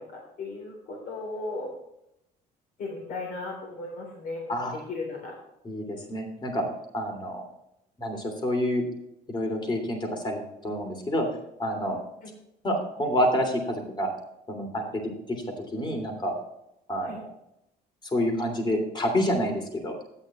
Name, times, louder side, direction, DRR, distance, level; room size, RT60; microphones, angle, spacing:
voice 1, 0.0-1.7 2.8-5.3 12.2-12.3 17.0-17.2, left 3 dB, 55° left, 0 dB, 3.5 m, -36 dB
voice 2, 5.6-6.6 6.9-7.5 8.0-8.9 9.3-11.3 11.6-12.0 12.6-14.1 14.5-15.0 15.3-15.4 15.7-16.3 16.9-17.3 18.1-19.9, equal, 25° left, 3 dB, 3.2 m, -28 dB
13.0 x 9.1 x 3.1 m, 0.81 s
cardioid pair, 110°, 17 cm